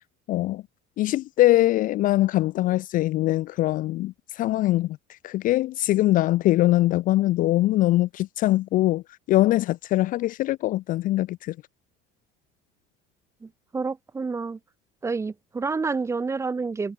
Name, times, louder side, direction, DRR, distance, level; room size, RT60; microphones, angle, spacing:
voice 1, 0.3-0.6 1.0-9.0 9.3-11.6, left 16 dB, 40° left, 0.5 m, -22 dB
voice 2, 13.4-14.6 15.0-16.9, right 4 dB, 15° right, 1.2 m, -29 dB
cardioid pair, 160°, 21 cm